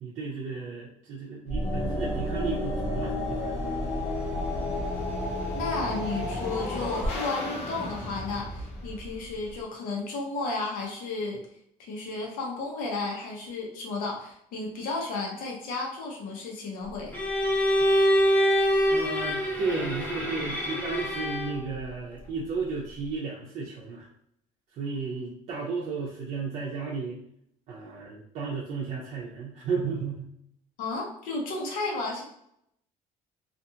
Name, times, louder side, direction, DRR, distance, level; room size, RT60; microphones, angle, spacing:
voice 1, 0.0-3.5 18.9-24.1 24.7-27.2 27.7-30.3, right 4 dB, 50° right, -4 dB, 0.6 m, -33 dB
sound 1, 1.5-9.6, left 1 dB, 45° left, 0.8 m, -31 dB
voice 2, 5.5-11.4 11.8-17.2 30.8-32.2, left 3 dB, 75° left, -1 dB, 0.9 m, -33 dB
Bowed string instrument, 17.1-21.6, equal, 10° left, 0.8 m, -25 dB
2.5 x 2.4 x 2.8 m, 0.72 s
cardioid pair, 160°, 14 cm